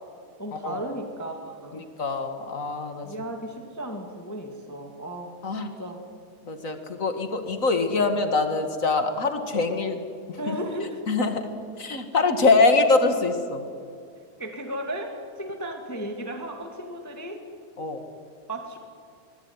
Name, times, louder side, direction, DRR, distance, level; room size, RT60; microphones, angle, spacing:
voice 1, 0.4-1.8 3.0-5.4 5.8-6.0 10.4-11.0 14.4-15.1 15.4-17.4 18.5-18.8, right 1 dB, 5° left, 3 dB, 1.8 m, -35 dB
voice 2, 2.0-3.1 5.4-5.7 6.5-10.0 10.5-10.6 11.1-11.5 11.8-13.6 17.8-18.0, left 3 dB, 30° left, 7 dB, 1.8 m, -23 dB
24.5 x 19.5 x 9.8 m, 2.3 s
omnidirectional pair, 3.5 m